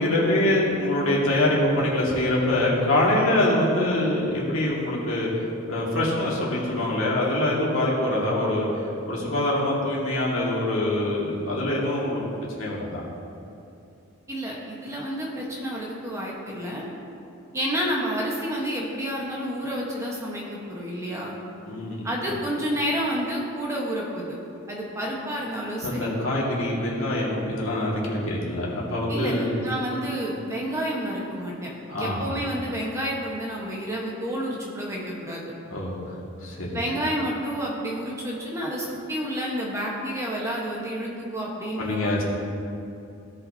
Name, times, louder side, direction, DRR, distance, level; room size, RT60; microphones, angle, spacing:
voice 1, 0.0-5.3 5.7-8.7 9.1-12.2 12.6-13.0 21.7-22.1 25.8-29.5 31.9-32.3 35.7-36.0 36.4-36.7 41.8-42.2, left 1 dB, 80° left, -5 dB, 2.0 m, -24 dB
voice 2, 14.3-16.8 17.5-21.4 22.0-24.3 24.7-26.1 29.1-31.7 32.0-35.4 36.7-42.2, equal, 15° right, -3 dB, 1.2 m, -30 dB
16.0 x 5.7 x 2.8 m, 2.6 s
head